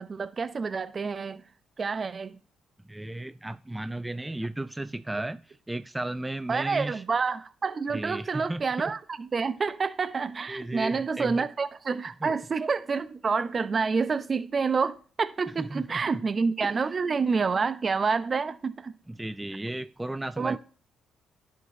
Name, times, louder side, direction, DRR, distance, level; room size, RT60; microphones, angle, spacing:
voice 1, 0.0-1.4 1.8-2.4 6.5-18.9 20.4-20.6, right 5 dB, 40° right, 0.7 m, -28 dB
voice 2, 2.9-7.0 7.9-8.6 10.5-11.5 12.2-12.3 15.5-16.2 16.8-16.9 19.1-20.6, right 1 dB, 10° right, 0.3 m, -35 dB
10.5 x 6.1 x 2.7 m
supercardioid pair, 65°, 0 cm